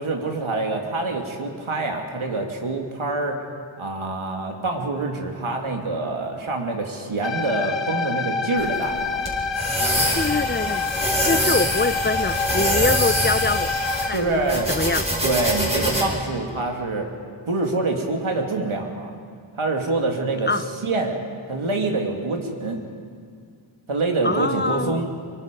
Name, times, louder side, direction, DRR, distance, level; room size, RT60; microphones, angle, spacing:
voice 1, 0.0-3.4 3.8-9.2 14.1-14.7 15.2-17.1 17.5-19.2 19.5-20.5 20.8-21.2 21.5-22.8 23.9-25.1, right 3 dB, 75° right, 2 dB, 2.8 m, -25 dB
sound 1, 7.2-14.2, left 5 dB, 60° left, 1.2 m, -27 dB
sound 2, 8.6-16.0, equal, 15° right, 5.8 m, -25 dB
voice 2, 10.1-10.9 11.3-13.7 14.0-15.1 20.5-20.6 24.2-25.0, left 3 dB, 20° left, 13 dB, 0.7 m, -24 dB
26.0 x 24.0 x 5.4 m, 2.2 s
wide cardioid pair, 65°, 49 cm